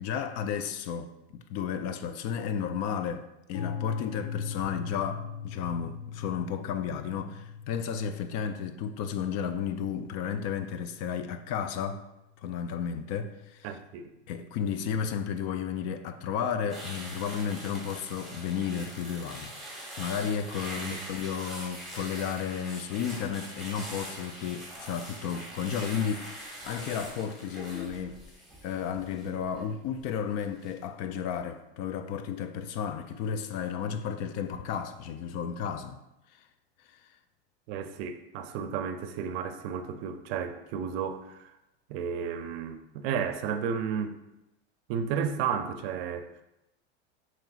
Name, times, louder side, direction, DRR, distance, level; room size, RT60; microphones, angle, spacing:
voice 1, 0.0-3.2 3.5-12.0 12.4-13.7 14.3-19.5 20.0-28.2 28.6-36.0 36.9-37.0, left 7 dB, 50° left, 0.4 m, -33 dB
sound 1, 3.5-11.4, left 7 dB, 75° left, 0.8 m, -41 dB
voice 2, 13.6-14.1 20.7-21.0 37.7-41.5 41.9-44.1 44.9-46.3, right 7 dB, 65° right, 0.5 m, -33 dB
sound 2, 16.7-30.0 30.4-30.7, right 1 dB, ahead, 1.2 m, -43 dB
5.9 x 3.0 x 2.4 m
supercardioid pair, 110°, 33 cm